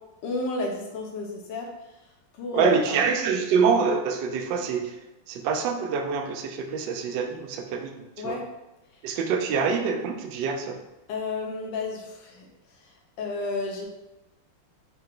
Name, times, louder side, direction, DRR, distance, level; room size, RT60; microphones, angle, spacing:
voice 1, 0.2-1.7 2.3-3.0 8.2-8.5 11.1-12.5 13.2-13.9, left 3 dB, 70° left, 0 dB, 1.1 m, -31 dB
voice 2, 2.5-4.9 5.3-8.4 9.0-10.8, right 5 dB, 80° right, 4 dB, 1.0 m, -25 dB
4.4 x 2.2 x 3.6 m, 0.97 s
omnidirectional pair, 2.4 m